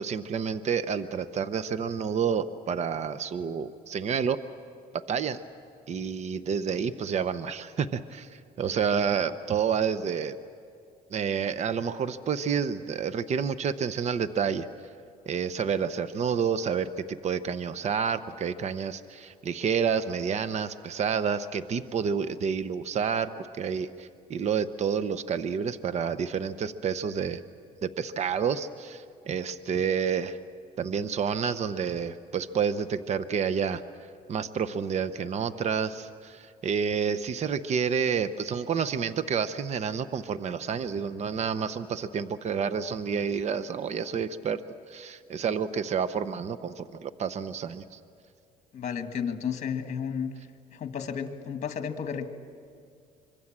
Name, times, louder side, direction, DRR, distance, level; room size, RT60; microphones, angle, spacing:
voice 1, 0.0-4.4 4.9-5.4 5.9-10.4 11.1-14.7 15.3-23.3 23.6-27.4 27.8-30.4 30.8-33.8 34.3-44.6 44.9-48.0, right 6 dB, 40° right, 13 dB, 0.8 m, -29 dB
voice 2, 48.7-50.3 50.7-52.3, left 7 dB, 45° left, 7 dB, 1.9 m, -32 dB
25.5 x 23.5 x 7.5 m, 2.3 s
cardioid pair, 110°, 17 cm